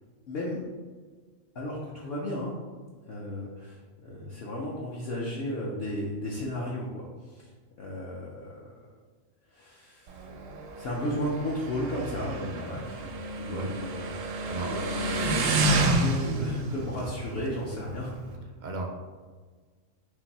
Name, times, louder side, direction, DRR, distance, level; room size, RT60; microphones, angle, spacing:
voice 1, 0.3-0.6 1.5-2.5 3.1-7.5 7.8-8.9 9.5-10.3 10.8-14.2 14.7-18.1, left 1 dB, 60° left, -4 dB, 0.8 m, -34 dB
Motorcycle, 10.1-18.4, right 2 dB, 80° right, 1.0 m, -30 dB
voice 2, 18.6-18.9, right 3 dB, 55° right, 1 dB, 0.5 m, -35 dB
4.5 x 2.6 x 4.1 m, 1.5 s
omnidirectional pair, 1.3 m